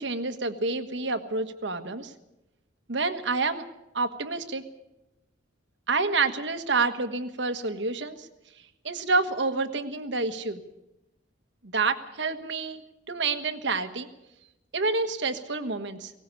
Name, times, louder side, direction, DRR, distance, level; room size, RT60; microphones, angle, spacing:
voice 1, 0.0-2.1 2.9-3.6 3.9-4.6 5.9-8.3 8.8-10.6 11.7-12.8 13.1-14.1 14.7-16.1, right 3 dB, 70° right, 8 dB, 1.5 m, -28 dB
18.5 x 18.0 x 8.4 m, 0.92 s
head